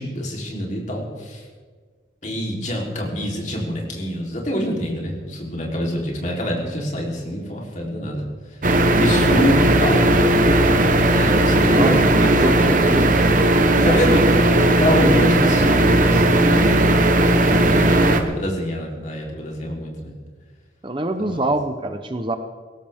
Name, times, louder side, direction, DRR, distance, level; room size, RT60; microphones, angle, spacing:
voice 1, 0.0-1.4 2.2-8.2 9.0-10.1 11.1-12.6 13.8-17.0 17.5-20.1 21.2-21.4, equal, 40° left, -1 dB, 3.6 m, -25 dB
sound 1, 8.6-18.2, right 1 dB, 45° right, 1.2 m, -16 dB
voice 2, 12.4-13.5 13.8-14.5 20.8-22.4, right 1 dB, 25° right, 7 dB, 0.8 m, -25 dB
19.5 x 16.5 x 3.6 m, 1.5 s
head